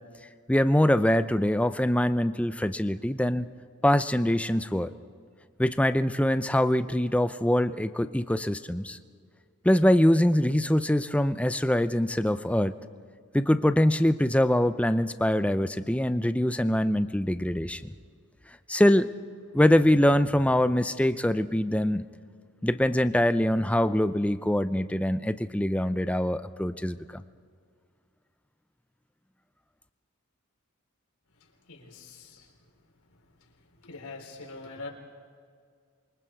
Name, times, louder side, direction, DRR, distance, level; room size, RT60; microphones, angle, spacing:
voice 1, 0.5-3.5 3.8-4.9 5.6-9.0 9.6-12.7 13.3-17.9 18.7-19.1 19.5-22.1 22.6-27.2, left 1 dB, 5° left, 12 dB, 0.5 m, -24 dB
voice 2, 31.7-32.4 33.8-34.9, left 3 dB, 80° left, 0 dB, 4.0 m, -42 dB
27.5 x 23.5 x 4.6 m, 2.1 s
head